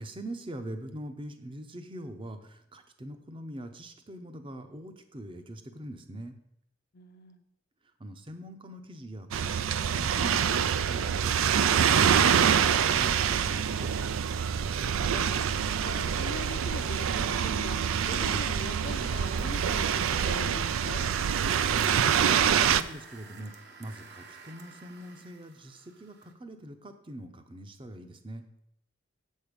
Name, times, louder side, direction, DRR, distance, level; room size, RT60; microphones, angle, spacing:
voice 1, 0.0-6.4 8.0-11.4 11.6-13.9 21.6-28.4, right 1 dB, 25° right, 8 dB, 0.7 m, -43 dB
voice 2, 6.9-7.4 14.8-15.4 15.8-17.8 18.1-21.1, left 3 dB, 50° left, 9 dB, 0.6 m, -42 dB
sound 1, 9.3-22.8, right 8 dB, 80° right, 0.4 m, -26 dB
sound 2, 18.1-26.3, right 4 dB, 50° right, 1.0 m, -51 dB
7.9 x 6.4 x 5.2 m, 0.75 s
head